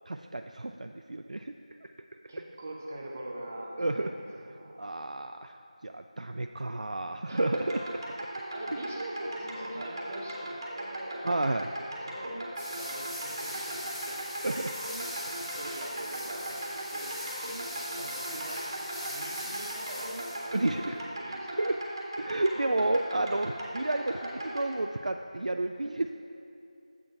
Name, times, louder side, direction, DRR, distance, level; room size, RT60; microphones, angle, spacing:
voice 1, 0.1-1.5 1.8-1.9 3.8-4.1 4.8-5.5 5.8-8.0 11.2-11.7 14.4-14.8 20.5-21.0 21.3-21.8 22.2-26.1, right 2 dB, 80° right, 6 dB, 0.3 m, -31 dB
voice 2, 2.3-4.1 4.4-4.8 7.3-7.4 8.5-11.5 12.0-14.2 15.5-18.7 19.1-21.7, right 1 dB, 20° right, -2 dB, 0.7 m, -43 dB
sound 1, 7.4-24.7, right 1 dB, 35° right, 1.6 m, -38 dB
sound 2, 12.6-20.6, equal, 20° left, 2.0 m, -40 dB
8.0 x 5.2 x 5.8 m, 2.7 s
figure-of-eight pair, 175°, 4 cm